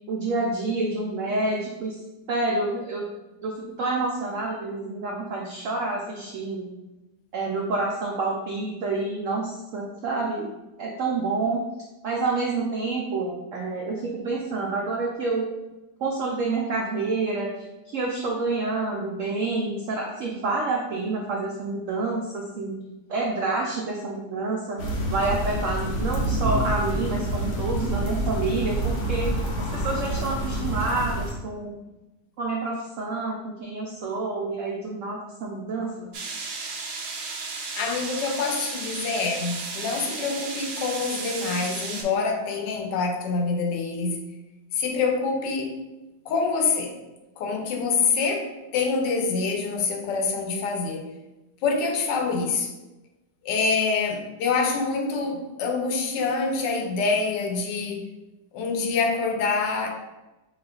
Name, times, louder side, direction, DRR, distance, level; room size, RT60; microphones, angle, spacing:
voice 1, 0.1-2.0 2.3-3.1 3.4-6.7 7.3-10.5 10.8-11.7 12.0-15.5 16.0-22.8 23.1-24.8 25.1-29.3 29.7-31.8 32.4-36.1, right 3 dB, 90° right, -1 dB, 0.6 m, -28 dB
sound 1, 24.8-31.3, right 1 dB, 55° left, 0.9 m, -27 dB
sound 2, 36.1-42.0, right 4 dB, 70° right, 1.0 m, -34 dB
voice 2, 37.8-44.2 44.7-45.8 46.3-46.9 47.4-51.1 51.6-52.7 53.4-58.1 58.5-59.9, left 4 dB, 80° left, 3 dB, 1.2 m, -26 dB
5.6 x 2.4 x 2.3 m, 1.1 s
omnidirectional pair, 1.9 m